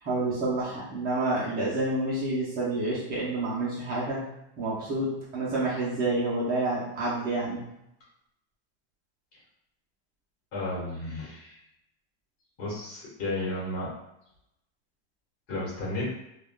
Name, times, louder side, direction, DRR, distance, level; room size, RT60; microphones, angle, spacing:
voice 1, 0.0-4.2 4.6-7.6, right 2 dB, 25° right, -6 dB, 0.6 m, -28 dB
voice 2, 10.5-11.6 12.6-13.9 15.5-16.1, left 1 dB, 40° left, -5 dB, 1.3 m, -33 dB
3.4 x 2.3 x 2.2 m, 0.82 s
supercardioid pair, 170°, 34 cm